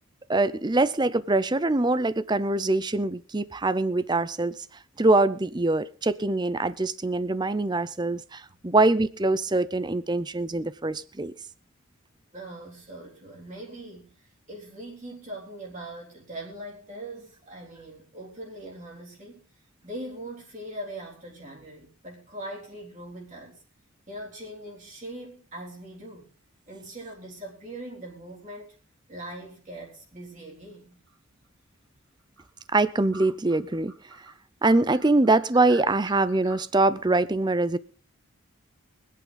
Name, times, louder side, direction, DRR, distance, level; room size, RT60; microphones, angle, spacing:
voice 1, 0.3-4.6 5.0-11.3 32.7-33.9 34.6-37.8, right 2 dB, 20° right, 0.6 m, -23 dB
voice 2, 12.3-19.4 19.8-23.6 24.1-26.3 26.7-28.7 29.1-31.0, right 1 dB, 35° right, 3.9 m, -41 dB
sound 1, 31.1-31.5 32.0-32.1 32.4-34.3 34.6-36.6, right 2 dB, 60° right, 2.9 m, -46 dB
24.5 x 8.5 x 3.9 m
head